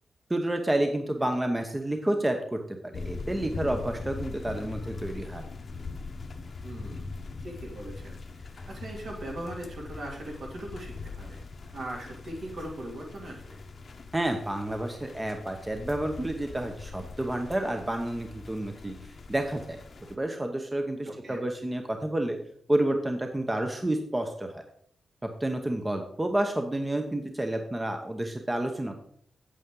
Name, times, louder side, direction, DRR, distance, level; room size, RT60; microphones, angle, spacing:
voice 1, 0.3-2.8 3.0-5.4 14.1-18.9 19.3-19.8 20.1-22.4 22.7-24.6 25.2-29.0, right 1 dB, 15° right, 4 dB, 0.8 m, -29 dB
sound 1, 2.9-20.2, left 4 dB, 50° left, 0.9 m, -41 dB
voice 2, 6.6-7.1 7.4-11.4 11.7-13.6 21.0-21.4, right 1 dB, 65° right, -1 dB, 2.6 m, -40 dB
8.3 x 8.0 x 3.8 m, 0.64 s
cardioid pair, 95°, 0 cm